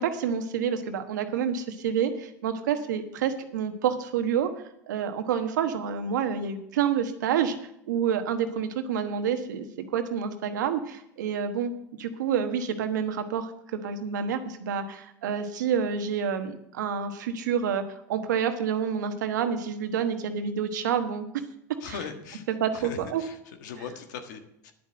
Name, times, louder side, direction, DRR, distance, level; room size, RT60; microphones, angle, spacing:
voice 1, 0.0-4.5 4.9-7.5 7.9-11.7 12.0-17.8 18.1-21.3 21.9-22.0 22.5-23.2, right 7 dB, 85° right, 8 dB, 1.2 m, -28 dB
voice 2, 21.8-22.4 22.7-24.7, left 6 dB, 80° left, 6 dB, 1.6 m, -40 dB
10.0 x 7.8 x 7.6 m, 0.77 s
hypercardioid pair, 90°, 10 cm